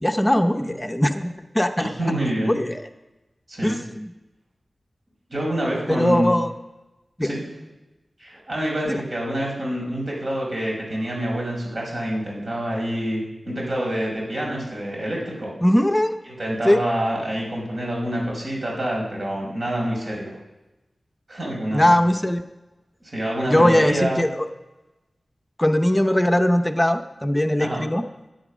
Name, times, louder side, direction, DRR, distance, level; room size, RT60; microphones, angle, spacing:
voice 1, 0.0-1.9 2.5-2.8 3.6-4.1 5.9-6.5 7.2-7.3 8.9-9.0 15.6-16.1 16.6-16.8 21.7-22.4 23.5-24.5 25.6-28.0, left 1 dB, 15° left, 7 dB, 0.7 m, -20 dB
voice 2, 1.8-2.6 3.5-3.8 5.3-6.3 7.2-7.4 8.2-15.5 16.3-20.3 21.3-21.9 23.0-24.2 27.6-27.8, right 1 dB, 55° right, -2 dB, 5.3 m, -27 dB
15.0 x 9.1 x 6.2 m, 1.1 s
wide cardioid pair, 85°, 0 cm